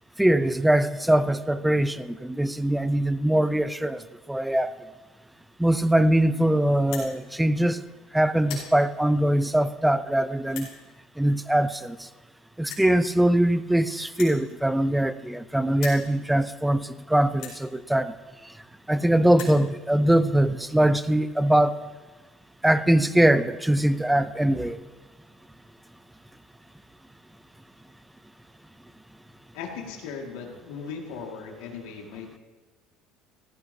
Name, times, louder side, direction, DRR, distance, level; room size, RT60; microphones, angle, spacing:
voice 1, 0.2-4.0 4.3-4.7 5.6-7.8 8.1-10.7 11.2-12.1 12.6-18.1 18.9-21.8 22.6-24.8, right 1 dB, 5° right, 0.4 m, -22 dB
sound 1, 6.8-7.1 7.8-8.0 8.3-8.7 9.4-9.5 10.4-10.7 11.8-11.9 12.1-12.2 12.7-12.9 14.1-15.4 15.7-16.0 16.7-16.8 17.3-17.6 18.5-18.6 18.8-18.9 19.2-19.6, left 7 dB, 65° left, 4.7 m, -39 dB
voice 2, 29.5-32.4, left 5 dB, 90° left, 1.9 m, -38 dB
16.5 x 14.5 x 2.7 m
cardioid pair, 145°, 0 cm